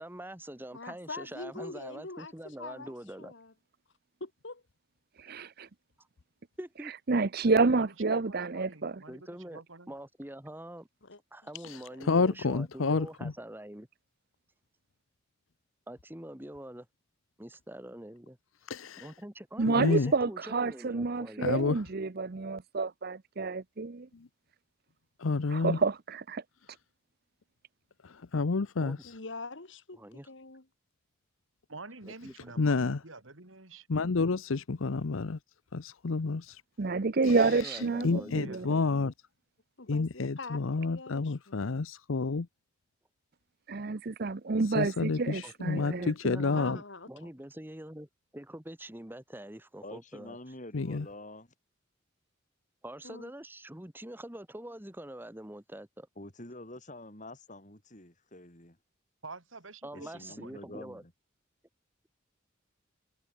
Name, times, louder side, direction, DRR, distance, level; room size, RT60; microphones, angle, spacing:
voice 1, 0.0-3.3 6.6-6.9 9.1-9.6 9.9-10.9 11.3-13.9 15.9-16.9 17.4-18.4 19.0-21.5 28.8-29.0 30.0-30.3 32.1-32.3 37.3-39.1 45.4-50.4 50.9-51.1 52.8-56.1 59.8-61.0, right 1 dB, 10° right, 1.5 m, -45 dB
voice 2, 0.7-3.5 4.2-4.6 11.0-11.2 11.6-11.7 12.0-12.7 29.0-30.7 39.8-41.6 46.5-47.3 53.0-53.3, left 3 dB, 65° left, 1.8 m, -44 dB
voice 3, 5.2-5.7 7.1-8.9 19.6-24.1 25.5-26.4 36.8-38.7 43.7-46.4, right 3 dB, 50° right, 0.7 m, -29 dB
voice 4, 7.7-10.0 31.7-33.9 38.4-38.7 46.5-46.7 59.2-60.6, right 3 dB, 75° right, 3.4 m, -47 dB
voice 5, 12.1-13.3 18.7-19.1 19.7-20.1 21.4-21.8 25.2-25.8 28.3-29.0 32.6-33.0 33.9-35.4 35.7-36.5 38.0-39.1 39.9-42.5 44.7-46.8 50.7-51.1, left 4 dB, 85° left, 0.7 m, -29 dB
voice 6, 49.8-51.5 56.2-58.8 59.9-61.1, left 1 dB, 40° left, 5.4 m, -47 dB
head